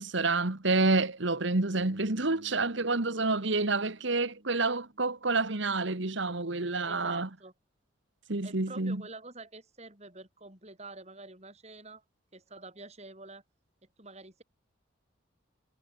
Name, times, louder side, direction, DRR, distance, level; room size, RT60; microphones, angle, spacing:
voice 1, 0.0-7.3 8.3-9.0, right 3 dB, 65° right, 1.7 m, -28 dB
Bass guitar, 1.8-5.9, right 1 dB, 50° right, 3.6 m, -55 dB
voice 2, 6.8-7.5 8.4-12.0 12.3-13.4 14.0-14.4, right 3 dB, 35° right, 7.7 m, -47 dB
head